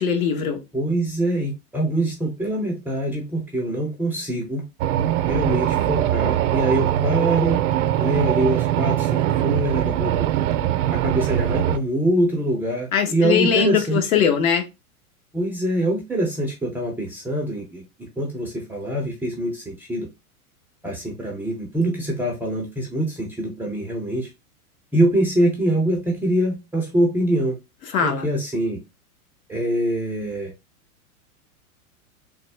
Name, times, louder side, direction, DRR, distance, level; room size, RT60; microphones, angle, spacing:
voice 1, 0.0-0.6 12.9-14.7 27.9-28.3, left 7 dB, 65° left, 1.1 m, -21 dB
voice 2, 0.7-4.7 5.3-7.7 8.0-10.3 10.9-14.0 15.3-20.1 20.8-24.3 24.9-27.5 28.0-28.8 29.5-30.5, right 1 dB, 5° right, 0.4 m, -24 dB
sound 1, 4.8-11.8, right 11 dB, 55° right, 0.5 m, -22 dB
3.4 x 2.2 x 3.2 m
hypercardioid pair, 105°, 44 cm